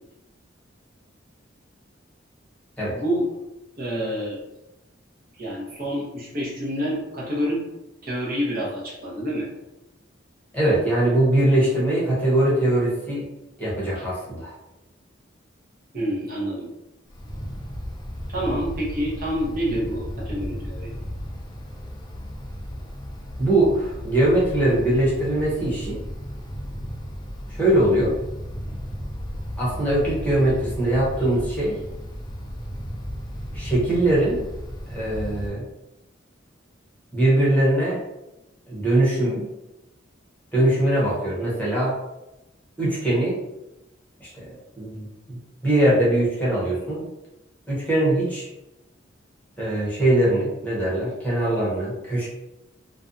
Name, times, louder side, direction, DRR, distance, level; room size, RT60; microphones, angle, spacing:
voice 1, 2.9-3.3 3.7-4.4 5.4-7.6 8.0-9.5 14.0-14.1 15.9-16.7 18.3-20.9, equal, 50° right, -5 dB, 0.7 m, -27 dB
voice 2, 10.5-13.2 13.6-14.5 23.4-26.0 27.5-28.1 29.6-31.8 33.5-34.4 34.9-35.7 37.1-38.0 38.7-39.4 40.5-41.9 42.8-43.4 44.2-47.1 47.7-48.5 49.6-52.3, right 1 dB, 10° left, -7 dB, 0.8 m, -21 dB
Wind, 17.1-35.5, equal, 25° left, 0.4 m, -34 dB
2.5 x 2.2 x 2.5 m, 0.93 s
head